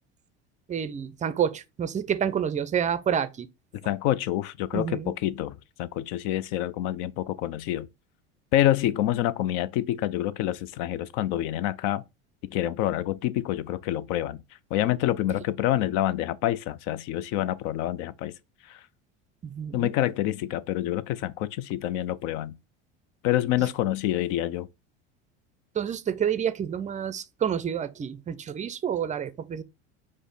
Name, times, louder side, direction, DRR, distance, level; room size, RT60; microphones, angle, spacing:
voice 1, 0.7-3.5 4.7-5.1 19.4-19.9 25.7-29.6, right 8 dB, 20° right, 0.4 m, -29 dB
voice 2, 3.8-7.9 8.5-12.0 12.4-14.4 14.7-18.3 18.6-18.8 19.7-22.5 23.2-24.7, left 13 dB, 65° left, 0.5 m, -27 dB
4.9 x 2.0 x 3.9 m
supercardioid pair, 90°, 33 cm